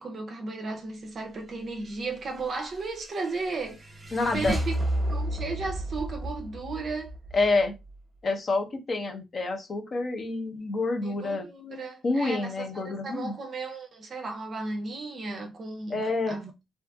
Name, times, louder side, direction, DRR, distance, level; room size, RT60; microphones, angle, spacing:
voice 1, 0.0-4.8 5.1-7.1 11.0-16.5, right 3 dB, 50° right, 0.4 m, -35 dB
sound 1, 2.4-8.0, right 1 dB, 15° right, 1.0 m, -33 dB
voice 2, 4.1-4.6 7.3-7.7 8.2-11.5 12.0-13.3 15.9-16.4, left 3 dB, 45° left, 0.6 m, -28 dB
2.7 x 2.4 x 2.2 m
cardioid pair, 90°, 0 cm